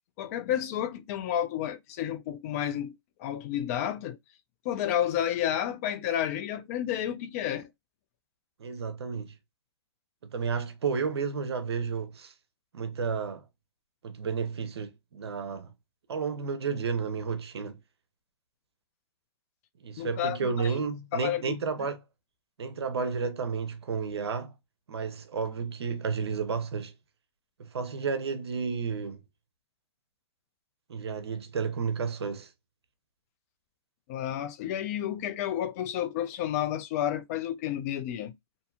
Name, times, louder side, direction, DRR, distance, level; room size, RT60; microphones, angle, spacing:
voice 1, 0.2-2.9 3.2-4.2 4.6-7.7 20.0-20.7 21.1-21.6 34.1-38.3, left 10 dB, 35° left, 0.4 m, -31 dB
voice 2, 8.6-9.3 10.3-12.3 12.7-13.4 14.0-15.7 16.1-17.8 19.8-22.0 22.6-24.5 24.9-26.9 27.6-29.2 30.9-32.5, right 5 dB, 75° right, 0.7 m, -32 dB
2.7 x 2.6 x 2.3 m
hypercardioid pair, 130°, 14 cm